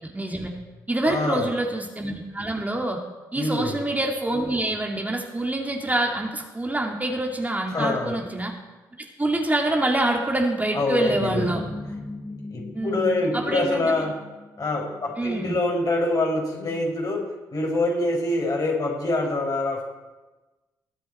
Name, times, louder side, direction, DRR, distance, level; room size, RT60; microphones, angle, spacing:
voice 1, 0.0-0.5 0.9-3.0 3.3-8.5 9.0-11.6 12.7-14.1 15.2-15.6, right 1 dB, 15° right, 0 dB, 2.3 m, -26 dB
voice 2, 1.0-1.5 3.4-3.7 7.7-8.2 10.7-11.6 12.5-14.2 14.6-19.8, left 2 dB, 40° left, 0 dB, 4.8 m, -25 dB
sound 1, 11.1-15.7, left 2 dB, 20° left, 1.2 m, -38 dB
21.5 x 7.4 x 4.4 m, 1.2 s
figure-of-eight pair, 40°, 10 cm